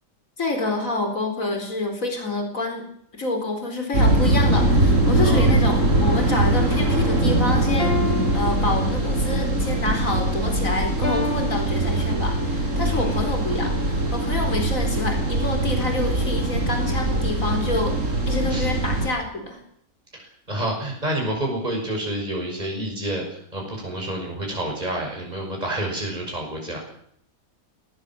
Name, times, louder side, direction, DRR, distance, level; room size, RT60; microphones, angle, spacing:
voice 1, 0.4-2.8 3.1-8.0 8.3-18.0 18.3-19.6, left 2 dB, 70° left, 4 dB, 4.6 m, -27 dB
sound 1, 3.9-19.1, right 1 dB, 65° right, 4.4 m, -22 dB
sound 2, 7.8-9.3 11.0-12.5, left 3 dB, 40° left, 3.0 m, -30 dB
voice 2, 12.8-13.2 18.5-18.7 20.1-26.8, right 1 dB, 30° right, 0 dB, 6.3 m, -29 dB
19.0 x 19.0 x 7.7 m, 0.67 s
omnidirectional pair, 1.5 m